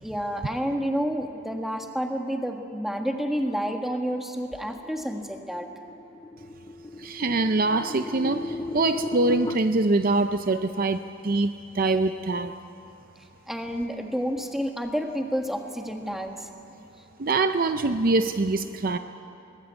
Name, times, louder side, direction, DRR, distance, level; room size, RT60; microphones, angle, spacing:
voice 1, 0.0-5.7 13.5-16.5, equal, ahead, 3 dB, 1.5 m, -29 dB
sound 1, 4.8-9.6, left 2 dB, 20° left, 0.5 m, -35 dB
voice 2, 7.0-12.5 17.2-19.0, right 2 dB, 45° right, 9 dB, 0.6 m, -24 dB
21.5 x 19.5 x 8.2 m, 2.9 s
head